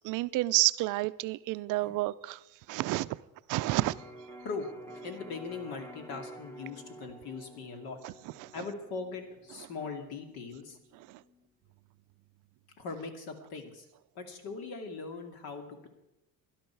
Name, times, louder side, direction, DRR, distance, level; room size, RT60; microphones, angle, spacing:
voice 1, 0.0-2.4 2.7-3.2 3.5-3.9 8.0-8.1 8.4-8.5 11.1-11.2, right 18 dB, 55° right, 15 dB, 0.4 m, -29 dB
Electric guitar, 3.6-11.4, right 1 dB, 5° left, 0.9 m, -50 dB
voice 2, 4.4-8.0 8.5-10.8 12.8-13.9 14.2-15.9, left 4 dB, 70° left, 5 dB, 2.4 m, -40 dB
17.5 x 12.0 x 4.6 m, 0.95 s
cardioid pair, 155°, 38 cm